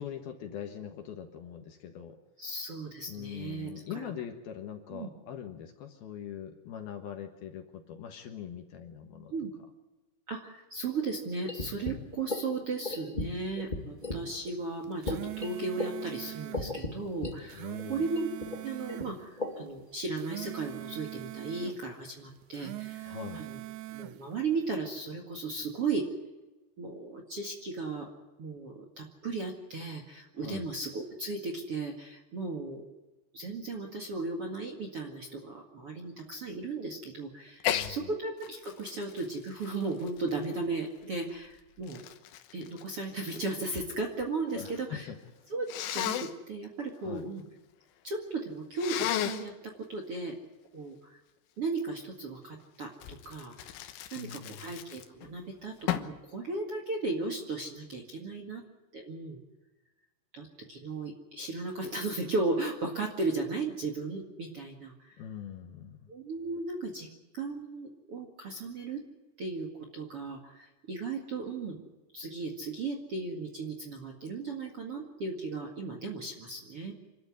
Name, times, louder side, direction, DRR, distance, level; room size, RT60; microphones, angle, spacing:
voice 1, 0.0-2.2 3.1-9.3 17.5-18.1 23.0-23.4 30.4-30.7 37.7-38.1 44.5-45.2 47.0-47.3 54.2-54.7 65.2-66.1, left 8 dB, 65° left, 5 dB, 2.8 m, -42 dB
voice 2, 2.4-4.1 4.9-5.1 9.3-9.5 10.3-18.3 18.6-23.6 23.9-26.1 26.8-28.1 28.4-32.8 33.3-42.0 42.5-45.1 45.5-47.4 48.0-50.4 50.7-51.2 51.6-53.7 54.1-58.6 58.9-59.4 60.3-65.2 66.1-67.1 67.3-69.0 69.4-71.8 72.1-76.9, right 3 dB, 45° right, 2 dB, 2.0 m, -36 dB
sound 1, 11.5-14.2 14.5-14.6 15.0-17.3 17.6-17.8 18.1-19.8, left 2 dB, 20° left, 1.1 m, -36 dB
sound 2, 14.8-16.7 17.3-19.1 20.0-21.8 22.4-24.2, right 17 dB, 80° right, 3.1 m, -42 dB
Sneeze, 37.6-37.9 38.4-40.8 41.5-43.9 44.2-44.8 45.7-46.3 48.8-49.5 53.0-55.3 55.9-56.2, left 12 dB, 90° left, 3.7 m, -34 dB
27.5 x 13.0 x 9.8 m, 1.1 s
omnidirectional pair, 5.4 m